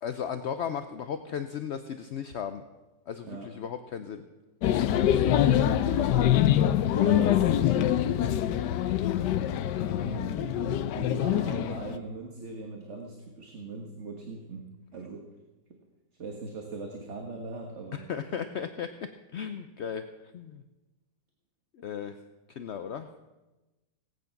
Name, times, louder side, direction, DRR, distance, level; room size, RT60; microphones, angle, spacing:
voice 1, 0.0-2.6 3.1-4.2 6.5-6.8 8.2-8.5 17.9-18.9 19.3-20.0 20.3-20.6 21.7-22.2 22.5-23.1, left 7 dB, 65° left, 9 dB, 0.7 m, -36 dB
sound 1, 4.6-12.0, left 11 dB, 80° left, 1.3 m, -25 dB
voice 2, 4.8-6.5 6.9-8.0 10.0-15.3 15.7-15.8 16.2-18.0, right 3 dB, 45° right, 2 dB, 1.6 m, -39 dB
18.0 x 9.2 x 5.9 m, 1.1 s
omnidirectional pair, 1.8 m